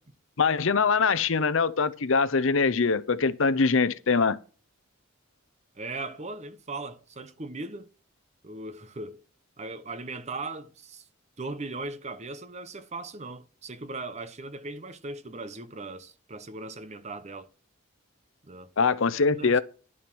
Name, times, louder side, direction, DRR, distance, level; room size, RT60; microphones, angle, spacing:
voice 1, 0.4-4.4 18.8-19.6, left 4 dB, 65° left, 0.7 m, -23 dB
voice 2, 5.7-7.9 8.4-9.2 9.6-11.1 11.4-17.5 18.4-18.7 19.3-19.6, right 2 dB, 30° right, 0.9 m, -38 dB
11.0 x 7.4 x 6.1 m
head